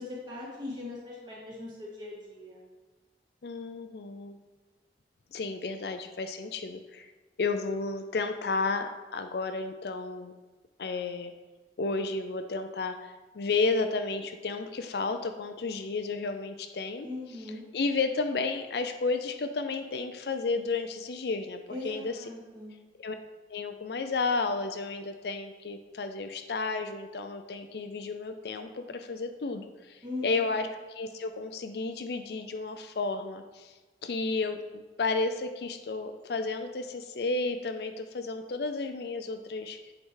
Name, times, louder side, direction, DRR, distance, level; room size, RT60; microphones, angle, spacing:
voice 1, 0.0-2.6 17.0-17.6 21.7-22.7 30.0-30.6, left 2 dB, 25° right, -5 dB, 2.1 m, -40 dB
voice 2, 3.4-4.4 5.3-7.1 7.4-10.3 10.8-11.3 11.8-17.1 17.7-22.2 23.0-23.2 23.5-33.7 34.0-39.9, left 3 dB, 65° left, 7 dB, 0.5 m, -32 dB
7.8 x 4.8 x 3.8 m, 1.3 s
head